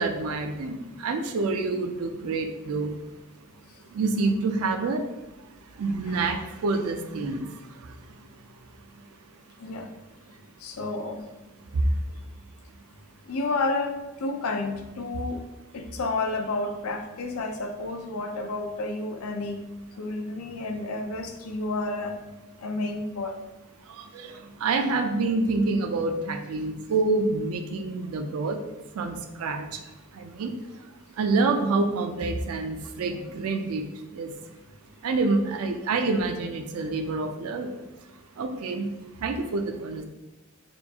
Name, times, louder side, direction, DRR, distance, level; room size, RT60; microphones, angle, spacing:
voice 1, 0.0-3.0 3.9-5.1 5.7-8.1 8.4-8.5 8.9-9.0 11.7-12.0 23.8-28.6 28.9-34.5 35.0-37.8 38.1-38.9 39.2-40.0, right 3 dB, 80° right, 6 dB, 0.4 m, -28 dB
voice 2, 10.6-11.2 13.3-15.4 15.7-19.6 20.0-22.1 22.6-23.4, left 2 dB, 90° left, 5 dB, 0.5 m, -30 dB
4.3 x 2.3 x 2.7 m, 1.0 s
head